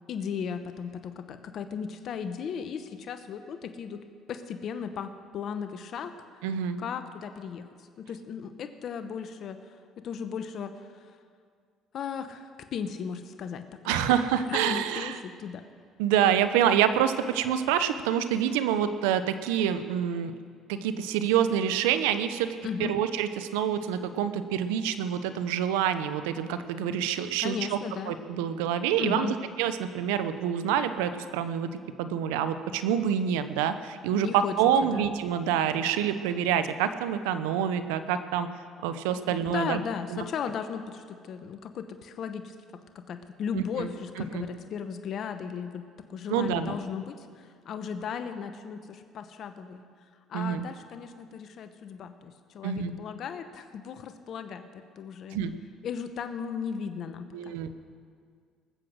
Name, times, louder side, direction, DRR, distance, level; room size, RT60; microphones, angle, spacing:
voice 1, 0.1-6.1 6.8-7.7 8.0-11.1 11.9-14.1 14.5-15.6 22.6-22.9 27.4-28.2 29.0-29.3 34.2-34.6 34.8-35.1 39.3-49.9 50.3-55.4 55.8-57.6, left 7 dB, 55° left, 9 dB, 0.9 m, -36 dB
voice 2, 6.4-6.8 13.8-15.2 16.0-20.3 20.7-22.5 22.8-27.8 28.1-31.7 32.0-38.5 38.8-39.8 40.1-40.2 43.5-43.9 44.3-44.5 46.3-46.8 50.3-50.6 52.6-52.9 55.3-55.5 57.3-57.7, right 9 dB, 90° right, 11 dB, 0.7 m, -27 dB
19.5 x 7.8 x 6.4 m, 2.1 s
supercardioid pair, 80°, 0 cm